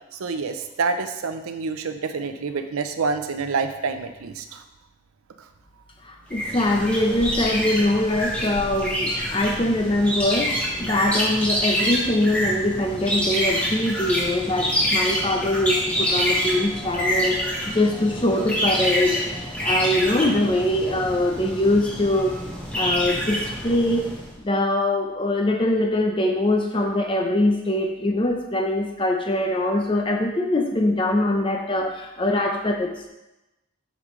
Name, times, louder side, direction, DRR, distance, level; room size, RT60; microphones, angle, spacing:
voice 1, 0.1-4.6 5.4-5.5, right 4 dB, 85° right, 8 dB, 0.5 m, -27 dB
voice 2, 6.0-17.4 17.6-22.4 22.7-24.1 24.4-33.1, left 1 dB, 25° left, 3 dB, 0.6 m, -23 dB
sound 1, 6.3-24.3, equal, 5° left, 1.1 m, -26 dB
7.4 x 5.1 x 3.1 m, 0.97 s
head